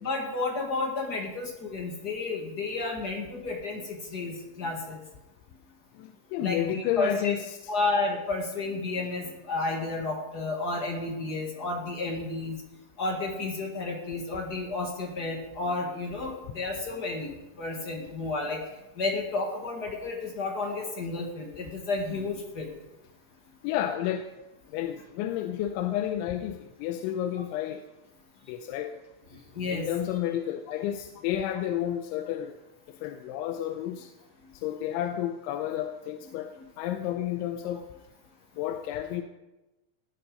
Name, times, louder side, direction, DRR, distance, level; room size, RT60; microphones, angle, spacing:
voice 1, 0.0-5.0 6.4-7.3 7.7-12.5 13.0-17.3 17.6-18.6 19.0-22.7 29.5-29.9, left 3 dB, 70° left, 0 dB, 0.9 m, -31 dB
voice 2, 6.0-7.7 23.6-24.3 24.7-27.8 28.5-28.9 29.6-32.6 33.0-34.1 34.6-36.5 36.8-37.8 38.6-39.2, left 11 dB, 85° left, 6 dB, 3.1 m, -31 dB
18.5 x 9.9 x 5.2 m, 1.0 s
omnidirectional pair, 5.4 m